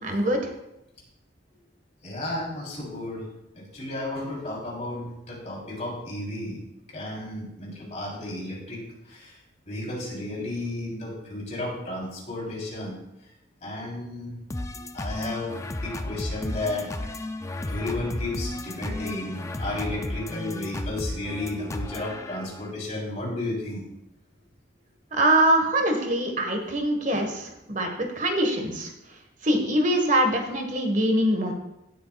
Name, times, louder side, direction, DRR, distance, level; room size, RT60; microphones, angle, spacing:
voice 1, 0.0-0.5 25.1-28.9 29.4-31.5, right 1 dB, 40° right, 4 dB, 1.6 m, -23 dB
voice 2, 2.0-3.3 3.6-6.6 6.9-9.3 9.7-13.0 13.6-14.4 14.9-16.9 17.7-23.8 27.1-27.2, left 1 dB, 40° left, -4 dB, 3.7 m, -33 dB
sound 1, 14.5-22.7, left 1 dB, 15° left, 0.4 m, -34 dB
16.5 x 8.3 x 2.4 m, 0.89 s
head